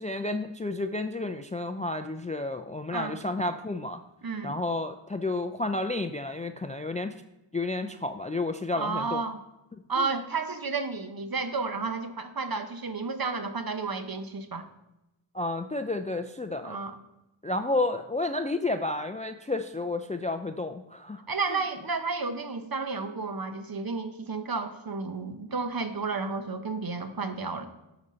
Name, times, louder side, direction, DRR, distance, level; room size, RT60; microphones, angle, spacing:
voice 1, 0.0-4.0 4.4-7.1 7.5-9.2 10.0-10.1 15.3-16.8 17.4-21.2, left 2 dB, 15° left, 8 dB, 0.3 m, -31 dB
voice 2, 4.2-4.5 8.7-9.4 9.9-14.7 16.6-17.0 21.3-27.7, right 4 dB, 45° right, 8 dB, 0.8 m, -32 dB
7.8 x 4.1 x 5.6 m, 0.94 s
wide cardioid pair, 45°, 49 cm